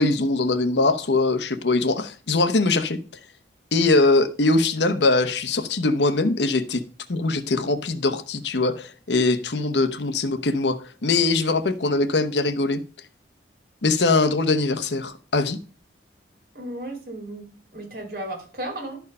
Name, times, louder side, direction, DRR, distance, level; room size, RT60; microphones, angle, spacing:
voice 1, 0.0-3.0 3.7-6.8 7.1-12.8 13.8-15.6, left 3 dB, 75° left, 0.9 m, -22 dB
voice 2, 16.5-17.5 17.7-19.0, right 1 dB, 55° right, 2.6 m, -34 dB
12.0 x 4.6 x 5.4 m
head